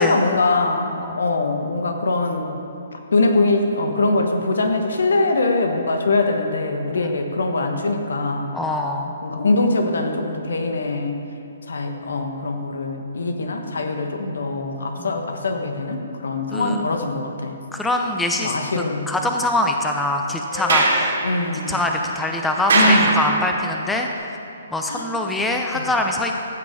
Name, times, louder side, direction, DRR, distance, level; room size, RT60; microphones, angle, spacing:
voice 1, 0.0-2.6 2.9-8.5 9.2-11.2 11.7-17.6 18.4-19.1 21.2-21.8 22.7-23.2 24.9-25.1 25.7-25.9, left 2 dB, 75° left, 5 dB, 1.2 m, -22 dB
voice 2, 8.5-9.1 15.0-15.2 16.5-16.9 17.7-21.2 21.7-24.4 24.7-26.4, left 1 dB, 5° left, 2 dB, 0.7 m, -24 dB
Sliding door, 20.5-23.8, right 2 dB, 70° right, 2.6 m, -22 dB
15.0 x 6.0 x 4.9 m, 2.8 s
hypercardioid pair, 140°, 0 cm